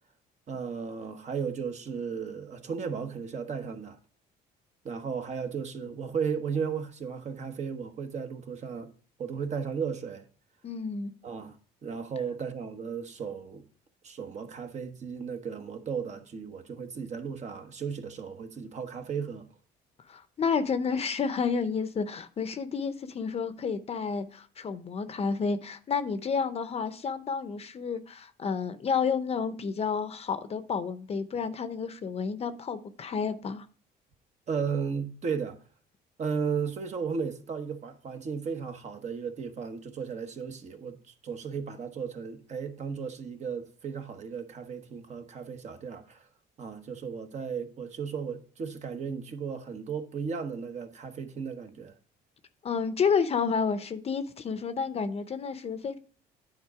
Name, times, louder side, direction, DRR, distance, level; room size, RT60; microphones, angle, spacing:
voice 1, 0.5-4.0 4.8-8.9 9.2-10.3 11.2-11.6 11.8-13.6 14.0-19.5 34.5-35.6 36.2-46.2 46.6-51.9, right 6 dB, 45° right, 1.1 m, -35 dB
voice 2, 10.6-11.1 20.1-33.7 52.6-56.0, left 5 dB, 35° left, 0.7 m, -30 dB
9.7 x 4.0 x 4.8 m
cardioid pair, 110°, 17 cm